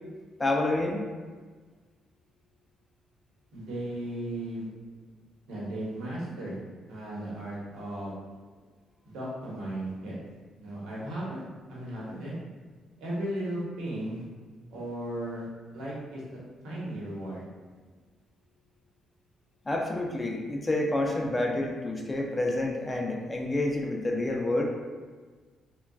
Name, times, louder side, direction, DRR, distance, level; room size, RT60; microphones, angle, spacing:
voice 1, 0.4-1.1 19.7-24.6, left 2 dB, 20° left, 1 dB, 0.4 m, -28 dB
voice 2, 3.5-4.7 5.5-6.6 6.9-8.2 9.0-10.2 10.6-11.4 11.7-12.4 13.0-14.2 14.7-15.5 15.7-16.4 16.6-17.4, right 1 dB, 85° right, -6 dB, 1.0 m, -35 dB
3.7 x 2.3 x 2.3 m, 1.4 s
cardioid pair, 90°, 0 cm